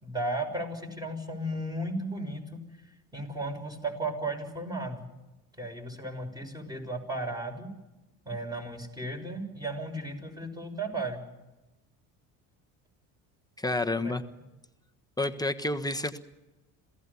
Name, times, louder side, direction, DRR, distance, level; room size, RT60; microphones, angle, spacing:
voice 1, 0.0-2.6 3.1-5.1 5.6-7.7 8.2-11.2 14.0-14.2, right 1 dB, 10° right, 4 dB, 6.2 m, -35 dB
voice 2, 13.6-14.2 15.2-16.2, left 2 dB, 10° left, 6 dB, 1.3 m, -29 dB
27.0 x 17.0 x 7.1 m, 1.0 s
supercardioid pair, 80°, 40 cm